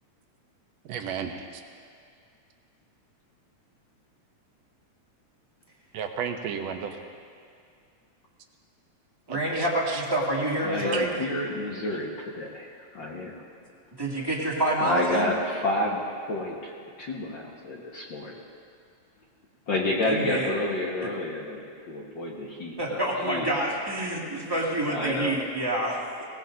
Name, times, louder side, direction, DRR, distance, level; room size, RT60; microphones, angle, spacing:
voice 1, 0.9-1.6 5.9-7.0 9.3-10.0 10.9-11.1, right 7 dB, 70° right, 4 dB, 2.0 m, -33 dB
voice 2, 9.3-11.1 14.0-15.3 20.0-20.5 22.8-26.0, right 1 dB, 10° right, -5 dB, 1.5 m, -27 dB
voice 3, 10.6-13.4 14.8-16.7 17.0-18.4 19.7-23.5 24.9-25.4, left 2 dB, 50° left, -2 dB, 1.5 m, -30 dB
21.0 x 18.0 x 2.6 m, 2.3 s
omnidirectional pair, 3.4 m